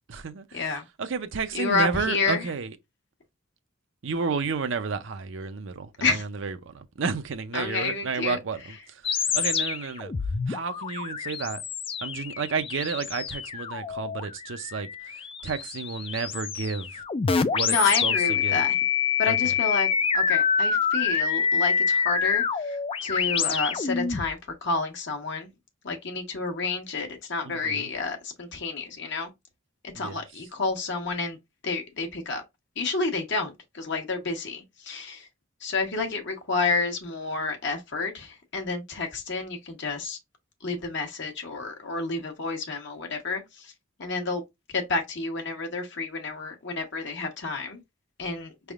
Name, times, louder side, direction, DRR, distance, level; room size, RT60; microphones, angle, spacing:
voice 1, 0.1-2.8 4.0-10.1 10.5-11.6 12.0-17.0 17.5-17.8 18.0-18.1 18.4-18.6 19.3-19.4 27.5-27.9 29.9-30.2, right 5 dB, 65° right, 0.5 m, -31 dB
voice 2, 1.5-2.5 6.0-6.2 7.5-8.4 17.6-18.7 19.2-19.9 20.1-25.5 25.8-29.3 29.9-31.4 31.6-32.4 32.8-35.3 35.6-40.2 40.6-43.7 44.0-44.4 44.7-47.8 48.2-48.5, left 3 dB, 60° left, 1.1 m, -29 dB
sound 1, 9.0-24.3, left 6 dB, 25° left, 0.3 m, -27 dB
5.3 x 3.4 x 2.4 m
head